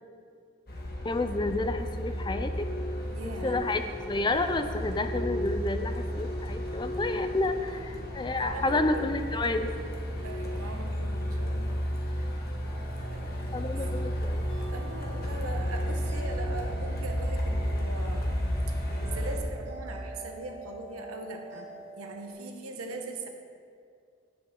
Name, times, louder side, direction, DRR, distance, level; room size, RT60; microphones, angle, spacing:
Truck, 0.7-19.4, equal, 45° left, 1.3 m, -32 dB
voice 1, 1.0-2.7 3.4-3.8 4.1-9.7 13.5-14.5, left 2 dB, 20° left, 8 dB, 0.4 m, -30 dB
voice 2, 3.1-3.6 7.7-7.9 8.4-9.2 10.2-11.8 12.2-12.4 13.0-13.7 14.7-18.5 19.0-21.7 22.0-23.3, right 2 dB, 85° right, 3 dB, 1.2 m, -40 dB
sound 1, 12.6-22.3, right 3 dB, 55° right, 2.4 m, -48 dB
16.5 x 6.0 x 3.8 m, 2.3 s
head